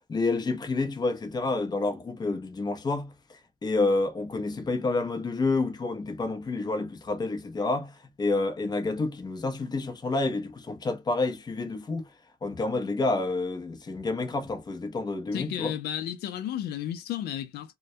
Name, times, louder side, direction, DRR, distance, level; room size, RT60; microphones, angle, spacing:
voice 1, 0.1-3.1 3.6-12.1 12.4-15.7, left 3 dB, 25° left, 0.7 m, -29 dB
voice 2, 15.3-17.7, left 11 dB, 70° left, 0.4 m, -33 dB
2.2 x 2.1 x 2.6 m
cardioid pair, 110°, 17 cm